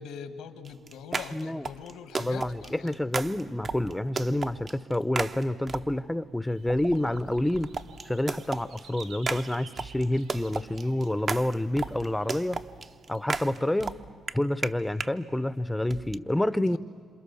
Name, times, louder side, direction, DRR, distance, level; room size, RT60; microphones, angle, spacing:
voice 1, 0.0-2.9, left 7 dB, 90° left, 10 dB, 1.4 m, -42 dB
sound 1, 0.6-6.1 6.7-15.1 15.9-16.2, right 4 dB, 40° right, 0.8 m, -35 dB
voice 2, 1.3-1.7 2.2-7.7 8.1-12.6 13.1-13.9 14.3-16.8, left 1 dB, 10° left, 16 dB, 0.6 m, -28 dB
sound 2, 6.4-13.9, right 6 dB, 90° right, 1.3 m, -53 dB
27.5 x 27.0 x 7.0 m, 2.5 s
cardioid pair, 90°, 0 cm